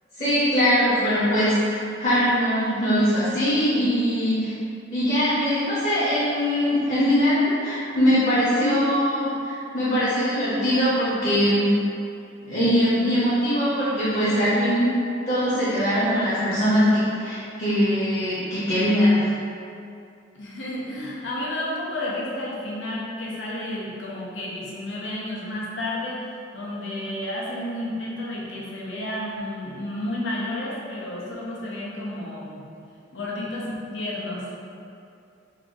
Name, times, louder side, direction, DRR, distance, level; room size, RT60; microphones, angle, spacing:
voice 1, 0.2-4.5 4.9-11.7 12.4-14.9 15.3-19.3, equal, 40° left, -13 dB, 0.9 m, -21 dB
voice 2, 20.3-26.2 26.5-32.6 33.1-34.5, left 1 dB, 85° left, -5 dB, 0.7 m, -31 dB
2.9 x 2.5 x 3.7 m, 2.6 s
head